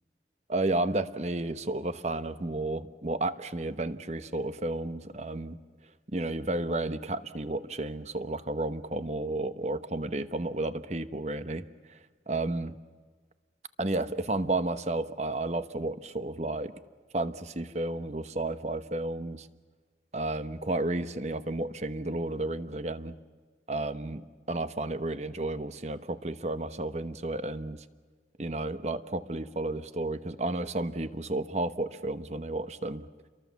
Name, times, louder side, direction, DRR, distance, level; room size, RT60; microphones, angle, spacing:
voice 1, 0.5-5.6 6.1-12.0 12.3-12.7 13.8-16.7 17.1-19.5 20.1-23.1 23.7-24.2 24.5-27.8 28.4-33.1, right 2 dB, 40° right, 12 dB, 1.0 m, -32 dB
29.5 x 23.0 x 7.2 m, 1.5 s
head